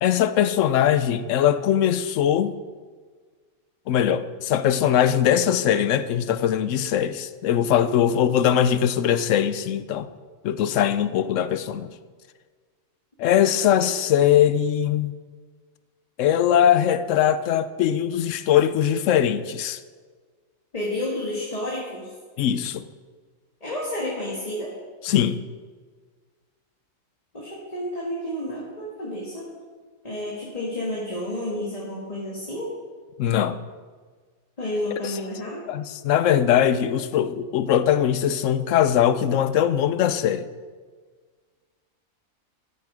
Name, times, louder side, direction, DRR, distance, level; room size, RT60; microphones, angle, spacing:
voice 1, 0.0-2.6 3.9-10.1 10.4-11.9 13.2-15.1 16.2-19.8 22.4-22.9 25.0-25.4 33.2-33.6 35.0-35.2 35.7-40.5, left 10 dB, 70° left, 13 dB, 0.9 m, -21 dB
voice 2, 20.7-22.1 23.6-24.8 27.3-29.5 30.0-32.7 34.6-35.6, left 1 dB, 30° left, -4 dB, 1.8 m, -30 dB
13.0 x 8.0 x 4.9 m, 1.5 s
omnidirectional pair, 1.4 m